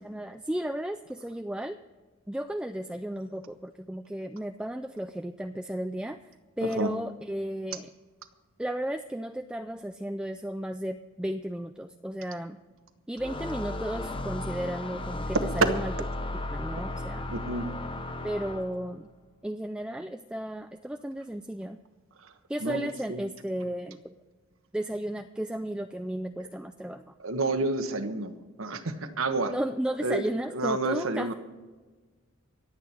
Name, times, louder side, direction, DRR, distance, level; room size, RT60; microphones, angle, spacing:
voice 1, 0.0-1.8 2.3-6.2 6.6-7.9 8.6-12.6 13.1-15.9 16.5-17.3 18.2-19.1 19.4-21.8 22.5-24.2 24.7-27.1 29.5-31.3, right 1 dB, 5° right, 7 dB, 0.3 m, -34 dB
voice 2, 6.6-6.9 17.3-17.7 22.6-22.8 23.1-23.2 27.2-29.5 30.0-30.2 30.5-31.3, right 2 dB, 70° right, 8 dB, 1.2 m, -29 dB
sound 1, 13.2-18.9, left 1 dB, 25° left, 0.7 m, -35 dB
25.0 x 8.6 x 4.4 m, 1.3 s
head